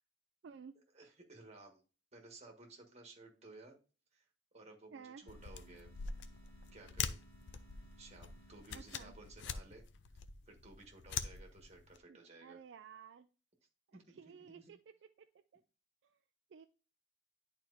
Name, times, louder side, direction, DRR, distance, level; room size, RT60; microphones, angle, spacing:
voice 1, 0.4-0.8 4.9-5.2 8.7-9.1 12.1-13.3 13.9-14.8 15.2-15.3 15.5-15.6 16.0-16.2 16.5-16.7, right 6 dB, 70° right, 8 dB, 0.4 m, -54 dB
voice 2, 0.9-1.8 2.1-3.8 4.1-4.2 4.5-5.9 6.7-7.2 8.0-9.8 10.5-12.6 13.9-14.8, right 2 dB, 35° right, 2 dB, 1.6 m, -57 dB
sound 1, 5.2-9.9, right 3 dB, 25° left, 2.8 m, -65 dB
sound 2, 5.3-12.0, left 6 dB, 70° left, 0.5 m, -44 dB
10.5 x 4.4 x 2.6 m, 0.35 s
head